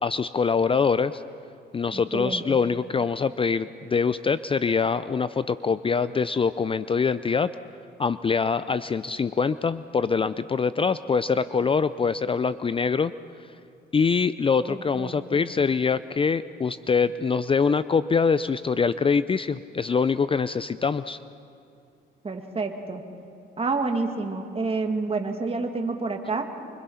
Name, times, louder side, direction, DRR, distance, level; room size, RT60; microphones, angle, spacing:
voice 1, 0.0-1.2 1.7-7.5 8.0-13.1 13.9-21.2, left 5 dB, 25° left, 14 dB, 0.5 m, -24 dB
voice 2, 1.9-2.6 14.7-15.4 22.2-23.0 23.6-26.5, right 3 dB, 30° right, 4 dB, 2.5 m, -29 dB
25.0 x 24.0 x 5.7 m, 2.6 s
cardioid pair, 90°, 20 cm